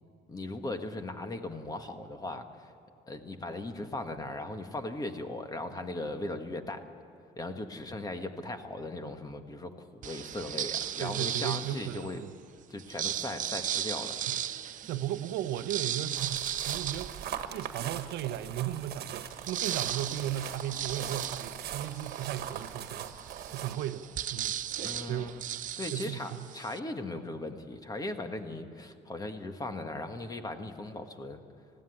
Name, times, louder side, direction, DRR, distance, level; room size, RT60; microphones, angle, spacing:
voice 1, 0.3-2.7 3.1-6.9 7.4-12.2 12.7-14.2 24.7-25.4 25.8-31.4, left 2 dB, 20° left, 7 dB, 1.5 m, -38 dB
sound 1, 10.0-12.2 12.8-18.0 18.5-18.6 18.8-26.8, right 10 dB, 50° right, 0.7 m, -36 dB
voice 2, 11.0-12.3 14.1-14.4 14.8-23.1 23.5-24.6 25.1-25.3 25.9-26.5, right 12 dB, 85° right, 12 dB, 0.7 m, -36 dB
sound 2, 16.1-23.8, right 9 dB, 70° right, 1.5 m, -40 dB
20.0 x 15.0 x 9.9 m, 2.6 s
cardioid pair, 110°, 17 cm